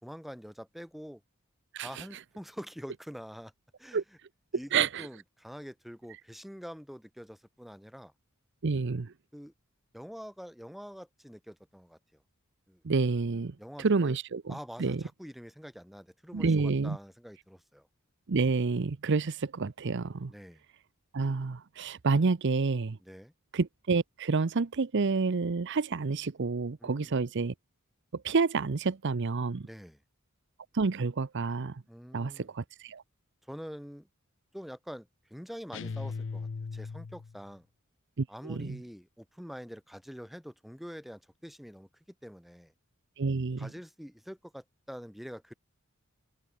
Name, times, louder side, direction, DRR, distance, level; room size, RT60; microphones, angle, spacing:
voice 1, 0.0-1.2 1.8-3.5 3.8-4.0 4.5-8.1 9.3-9.5 9.9-12.2 12.7-12.8 13.6-14.2 14.5-17.9 20.3-20.6 23.0-23.3 26.8-27.1 29.6-30.0 31.9-32.5 33.5-34.1 34.5-37.7 38.3-41.9 42.2-42.7 43.6-45.5, equal, ahead, 2.7 m, -45 dB
voice 2, 1.7-2.0 3.9-4.0 4.7-5.1 8.6-9.1 12.8-15.0 16.3-17.0 18.3-20.3 21.1-23.0 23.5-27.5 28.1-29.7 30.7-31.8 32.1-33.0 38.2-38.8 43.2-43.7, right 4 dB, 60° right, 0.6 m, -29 dB
sound 1, 35.7-37.4, left 4 dB, 65° left, 0.5 m, -38 dB
head